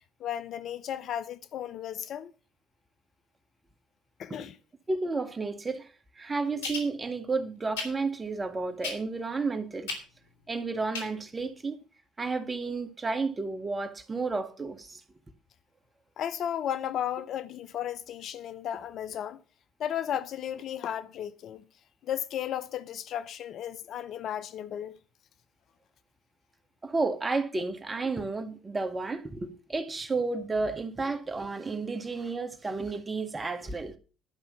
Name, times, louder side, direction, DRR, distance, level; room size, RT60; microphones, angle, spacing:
voice 1, 0.2-2.3 4.2-4.6 16.2-19.4 19.8-21.7 22.0-25.0, left 10 dB, 60° left, 0.7 m, -34 dB
voice 2, 4.9-5.9 6.2-9.9 10.5-11.8 12.2-15.0 26.8-33.9, right 3 dB, 25° right, 1.9 m, -32 dB
sound 1, 6.6-6.9 7.8-7.9 8.8-9.2 9.9-10.0 10.9-11.1 11.4-11.5, left 3 dB, 85° left, 2.7 m, -34 dB
11.5 x 5.6 x 6.9 m
hypercardioid pair, 60°, 0 cm